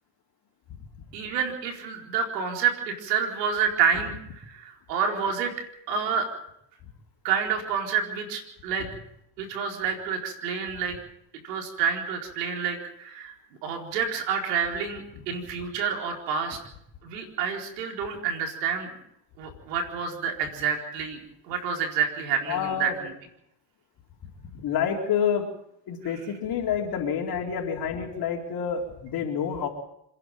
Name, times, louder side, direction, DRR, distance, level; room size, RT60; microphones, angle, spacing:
voice 1, 1.1-5.5 5.9-6.3 7.2-8.9 9.4-11.0 11.4-13.3 13.6-16.6 17.0-18.9 19.4-21.2 21.5-23.1, right 7 dB, 90° right, 3 dB, 4.4 m, -28 dB
voice 2, 22.5-23.0 24.5-25.5 25.9-29.7, left 7 dB, 50° left, 0 dB, 4.1 m, -28 dB
27.5 x 11.0 x 9.0 m, 0.76 s
supercardioid pair, 105°, 48 cm